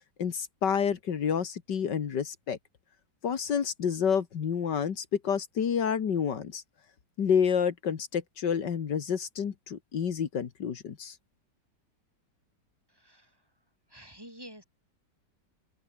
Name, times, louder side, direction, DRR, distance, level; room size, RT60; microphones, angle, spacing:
voice 1, 0.2-2.6 3.2-6.6 7.2-11.2, left 7 dB, 75° left, 2.2 m, -29 dB
voice 2, 12.9-13.3 13.9-14.6, equal, 10° right, 7.1 m, -48 dB
open air
omnidirectional pair, 1.9 m